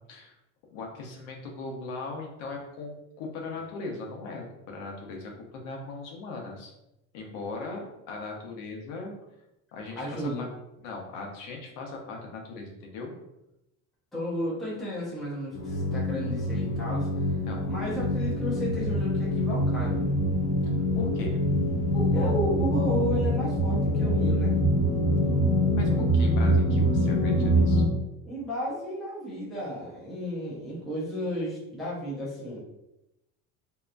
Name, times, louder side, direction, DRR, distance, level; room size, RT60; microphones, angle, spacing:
voice 1, 0.7-6.7 7.1-9.1 9.7-10.5 10.8-13.1 17.4-17.6 20.6-21.4 25.8-27.8, left 3 dB, 75° left, 1 dB, 0.7 m, -39 dB
voice 2, 9.9-10.4 14.1-17.1 17.6-20.0 21.9-24.5 28.2-32.6, equal, ahead, -8 dB, 0.5 m, -33 dB
sound 1, 15.5-27.8, equal, 45° left, 1.1 m, -25 dB
2.7 x 2.2 x 2.4 m, 0.90 s
cardioid pair, 175°, 34 cm